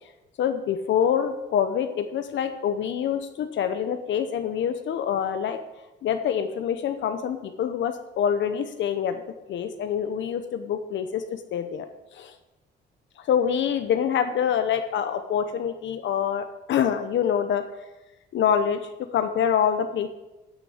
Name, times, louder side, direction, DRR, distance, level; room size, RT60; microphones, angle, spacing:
voice 1, 0.4-5.6 6.0-9.2 9.5-11.9 12.1-12.3 13.2-17.6 18.3-18.8 19.1-20.1, left 8 dB, 70° left, 8 dB, 0.8 m, -25 dB
9.7 x 6.0 x 7.2 m, 1.0 s
cardioid pair, 90°, 20 cm